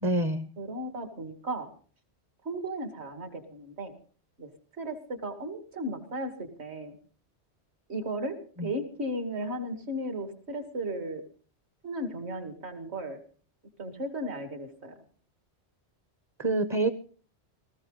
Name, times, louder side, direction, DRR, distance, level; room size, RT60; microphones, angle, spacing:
voice 1, 0.0-0.5 8.6-8.7 16.4-16.9, right 2 dB, 25° right, 12 dB, 0.7 m, -26 dB
voice 2, 0.6-1.7 2.4-3.9 4.4-4.5 4.8-7.0 7.9-11.2 11.8-13.2 13.8-15.0, right 1 dB, 65° right, 7 dB, 2.6 m, -35 dB
18.5 x 15.0 x 4.0 m, 0.41 s
omnidirectional pair, 1.2 m